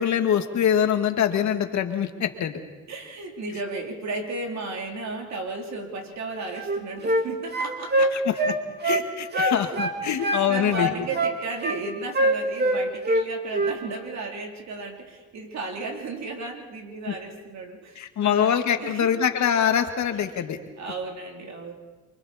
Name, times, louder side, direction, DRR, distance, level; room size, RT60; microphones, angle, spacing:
voice 1, 0.0-2.6 8.1-8.3 8.8-10.9 18.0-20.6, left 9 dB, 65° left, 6 dB, 1.8 m, -24 dB
voice 2, 2.9-8.2 9.3-9.8 10.1-19.1 20.3-21.7, right 3 dB, 65° right, 2 dB, 3.4 m, -34 dB
sound 1, 6.5-7.3 7.5-9.1 9.3-10.5 10.7-11.8 12.1-13.3 13.5-13.8, right 1 dB, 35° right, 2.7 m, -24 dB
28.5 x 24.0 x 4.2 m, 1.3 s
cardioid pair, 90°, 30 cm